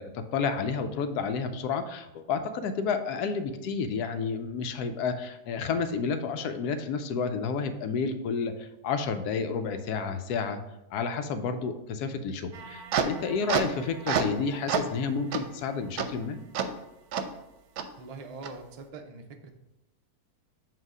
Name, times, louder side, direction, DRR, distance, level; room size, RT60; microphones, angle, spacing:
voice 1, 0.0-10.6 10.9-16.4, left 5 dB, 85° left, 8 dB, 1.1 m, -30 dB
sound 1, 12.5-14.4 14.7-15.0 15.3-15.4 16.0-16.1 16.6-16.7 17.1-17.2 17.8-17.9 18.4-18.5, right 6 dB, 80° right, 1.1 m, -29 dB
voice 2, 18.0-19.5, right 3 dB, 60° right, 3 dB, 0.4 m, -43 dB
7.5 x 2.8 x 4.8 m, 0.91 s
omnidirectional pair, 1.6 m